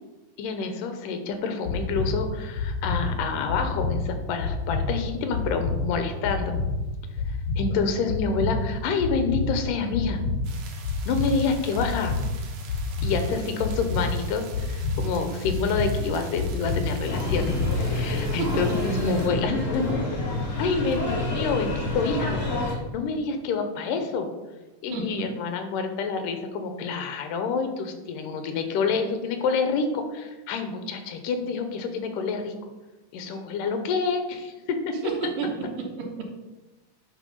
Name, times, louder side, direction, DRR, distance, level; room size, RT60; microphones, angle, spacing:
voice 1, 0.4-6.5 7.6-10.2 11.1-12.2 13.0-19.9 20.3-24.3 24.8-32.6 33.1-35.0, left 4 dB, 80° left, 7 dB, 2.4 m, -28 dB
sound 1, 1.7-18.0, left 3 dB, 55° left, 2.2 m, -29 dB
sound 2, 10.4-19.3, right 6 dB, 70° right, 2.2 m, -46 dB
sound 3, 17.0-22.7, left 2 dB, 30° left, 1.5 m, -28 dB
voice 2, 18.3-18.6 24.9-25.3 35.0-36.2, right 5 dB, 85° right, 0 dB, 2.8 m, -31 dB
8.8 x 4.1 x 5.4 m, 1.1 s
omnidirectional pair, 3.9 m